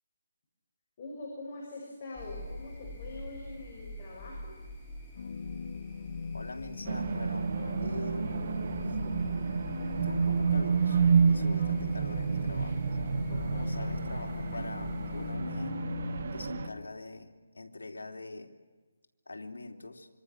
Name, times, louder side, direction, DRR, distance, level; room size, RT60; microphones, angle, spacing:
voice 1, 1.0-4.6 13.3-13.8, left 2 dB, 35° left, -3 dB, 7.2 m, -44 dB
sound 1, 2.1-15.3, left 1 dB, 10° left, 5.7 m, -44 dB
sound 2, 5.2-16.9, left 5 dB, 55° left, 1.1 m, -40 dB
voice 2, 6.3-7.5 7.8-8.3 8.9-9.0 10.0-12.8 13.5-15.8 16.3-18.5 19.3-20.1, left 2 dB, 85° left, 3 dB, 3.3 m, -43 dB
sound 3, 6.9-16.7, right 6 dB, 50° right, 1.7 m, -30 dB
26.0 x 25.5 x 6.5 m, 1.3 s
hypercardioid pair, 160°, 0 cm